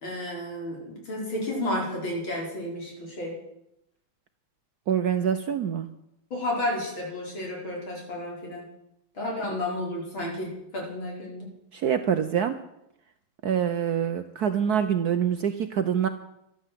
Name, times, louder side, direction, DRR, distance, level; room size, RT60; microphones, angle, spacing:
voice 1, 0.0-3.3 6.3-8.7 9.1-11.5, left 1 dB, 70° left, -2 dB, 5.7 m, -32 dB
voice 2, 4.9-5.9 11.7-12.6 13.4-16.1, right 8 dB, 60° right, 9 dB, 1.1 m, -25 dB
12.5 x 12.5 x 7.6 m, 0.81 s
omnidirectional pair, 2.3 m